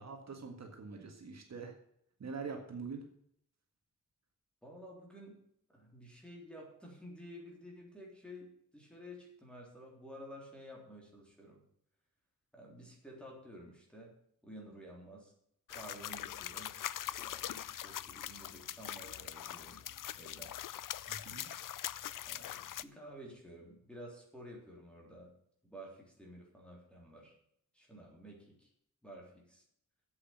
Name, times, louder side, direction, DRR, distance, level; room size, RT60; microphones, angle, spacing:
voice 1, 0.0-1.7 2.2-3.0 21.1-21.5, right 5 dB, 55° right, 3 dB, 1.8 m, -44 dB
voice 2, 4.6-5.4 5.7-11.6 12.5-14.2 14.4-15.3 15.7-16.7 17.2-19.8 20.1-20.5 22.2-25.3 25.6-27.3 27.7-28.7 29.0-29.6, equal, 5° left, -2 dB, 3.6 m, -52 dB
sound 1, 15.7-22.8, left 11 dB, 85° left, 0.5 m, -42 dB
8.2 x 8.1 x 9.1 m, 0.72 s
wide cardioid pair, 175°, 31 cm